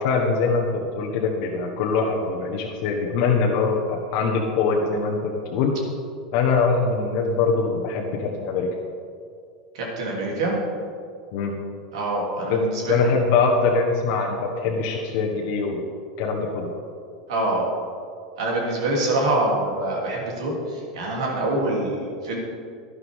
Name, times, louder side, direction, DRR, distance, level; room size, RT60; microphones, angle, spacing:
voice 1, 0.0-5.7 6.3-8.7 11.3-11.6 12.5-12.6 12.9-15.8 16.2-16.7, left 4 dB, 60° left, 0 dB, 1.3 m, -23 dB
voice 2, 9.7-10.5 11.9-13.0 17.3-17.7 18.4-22.4, right 2 dB, 70° right, -2 dB, 3.2 m, -25 dB
11.5 x 11.0 x 3.7 m, 2.3 s
hypercardioid pair, 90°, 3 cm